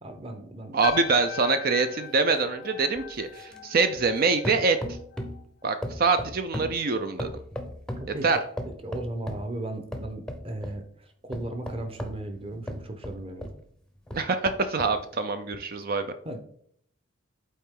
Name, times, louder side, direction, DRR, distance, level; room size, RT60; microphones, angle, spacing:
voice 1, 0.0-0.8 8.0-8.4 8.7-13.5 16.2-16.4, right 1 dB, 25° right, 6 dB, 0.9 m, -36 dB
voice 2, 0.7-5.0 5.6-7.3 8.2-8.4 14.1-16.1, right 4 dB, 45° right, 9 dB, 0.4 m, -25 dB
sound 1, 0.8-5.4 5.7-6.1, left 9 dB, 50° left, 0.5 m, -39 dB
sound 2, 0.8-4.2 4.4-5.5 5.8-8.1 8.6-9.5 9.9-10.8 11.3-13.6 14.1-15.0 15.5-15.6, equal, 5° left, 0.7 m, -37 dB
8.4 x 4.2 x 3.7 m, 0.64 s
head